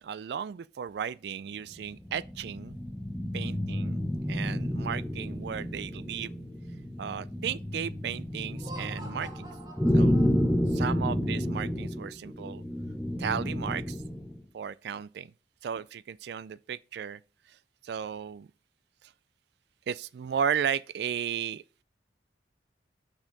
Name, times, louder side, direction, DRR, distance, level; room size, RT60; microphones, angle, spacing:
voice 1, 0.0-2.8 3.3-4.0 4.3-6.4 7.0-9.5 9.9-10.2 10.7-12.6 13.2-14.0 14.5-15.3 15.6-17.2 17.8-18.5 19.9-21.6, right 8 dB, 65° right, 0.3 m, -34 dB
sound 1, 1.7-14.4, equal, 5° left, 0.6 m, -30 dB
Laughter, 8.5-10.8, right 2 dB, 20° right, 1.8 m, -47 dB
6.4 x 6.2 x 3.9 m
head